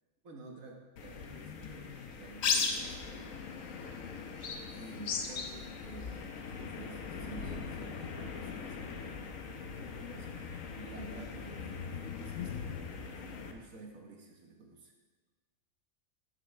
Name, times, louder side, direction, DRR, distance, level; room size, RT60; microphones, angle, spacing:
voice 1, 0.2-3.4 4.7-14.9, right 3 dB, 80° right, 1 dB, 1.7 m, -51 dB
sound 1, 1.0-13.5, left 5 dB, 90° left, 1.3 m, -39 dB
14.0 x 6.1 x 3.4 m, 1.4 s
omnidirectional pair, 1.4 m